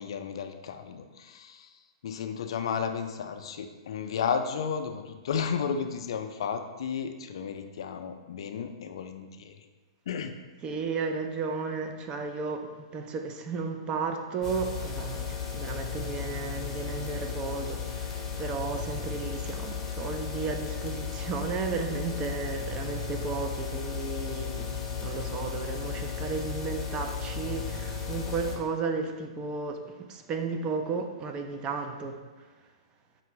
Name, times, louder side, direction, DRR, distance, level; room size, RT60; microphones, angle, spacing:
voice 1, 0.0-1.7 2.0-9.6 10.1-10.3, left 6 dB, 65° left, 7 dB, 0.3 m, -33 dB
voice 2, 10.6-12.7 12.9-24.7 25.0-29.8 30.1-32.2, right 4 dB, 30° right, 5 dB, 0.4 m, -33 dB
sound 1, 14.4-28.6, left 6 dB, 15° left, 0.7 m, -35 dB
5.3 x 2.5 x 3.0 m, 1.3 s
hypercardioid pair, 115°, 3 cm